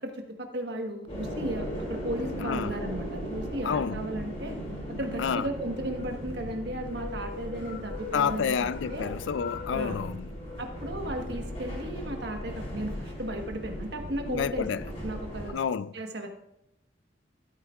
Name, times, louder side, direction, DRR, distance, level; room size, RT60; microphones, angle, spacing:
voice 1, 0.0-4.5 5.0-9.1 9.7-10.0 10.6-14.7 15.0-15.6 15.9-16.3, right 1 dB, 65° right, 1.3 m, -35 dB
sound 1, 1.1-15.5, equal, 35° left, 3.3 m, -37 dB
voice 2, 2.4-2.8 3.6-4.0 5.2-5.5 8.1-10.3 14.3-14.8 15.5-15.9, left 7 dB, 85° left, 0.4 m, -29 dB
13.5 x 8.8 x 2.4 m
head